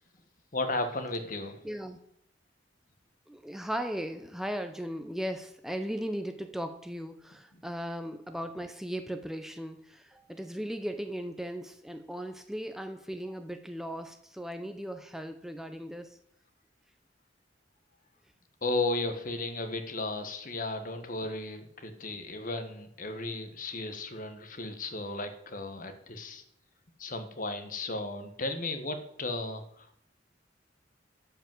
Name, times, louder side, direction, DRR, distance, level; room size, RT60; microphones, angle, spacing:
voice 1, 0.5-1.6 18.6-26.4 27.0-30.0, left 2 dB, 50° left, 8 dB, 1.4 m, -35 dB
voice 2, 1.6-2.0 3.3-16.2, equal, ahead, 7 dB, 0.6 m, -37 dB
12.0 x 5.3 x 7.6 m, 0.72 s
head